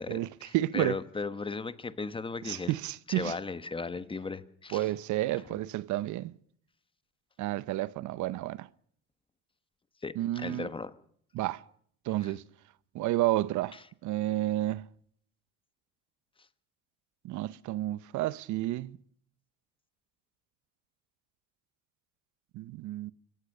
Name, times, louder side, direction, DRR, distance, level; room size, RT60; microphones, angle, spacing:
voice 1, 0.0-2.7 3.1-4.9 10.0-10.9 12.2-12.3 13.7-13.8, left 4 dB, 15° left, 1.1 m, -37 dB
voice 2, 0.5-1.0 2.4-3.3 4.7-6.3 7.4-8.7 10.2-10.7 11.3-11.6 12.1-12.4 12.9-13.8 14.0-14.9 17.2-19.0 22.5-23.1, right 15 dB, 60° right, 0.8 m, -31 dB
25.0 x 16.5 x 6.6 m
cardioid pair, 130°, 33 cm